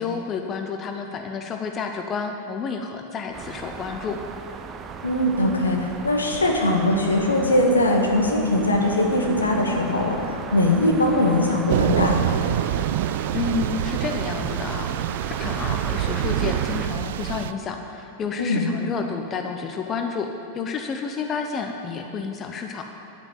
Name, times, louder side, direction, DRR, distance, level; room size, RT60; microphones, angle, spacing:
voice 1, 0.0-4.2 13.3-14.9 15.4-22.8, left 5 dB, 25° left, 5 dB, 0.8 m, -30 dB
sound 1, 3.3-16.9, right 6 dB, 25° right, 0.8 m, -36 dB
voice 2, 5.0-12.2 18.4-18.7, left 1 dB, 75° left, 0 dB, 1.9 m, -21 dB
Thunder / Rain, 11.7-17.5, right 11 dB, 55° right, 0.3 m, -25 dB
10.0 x 8.8 x 8.9 m, 2.7 s
figure-of-eight pair, 90°, 0 cm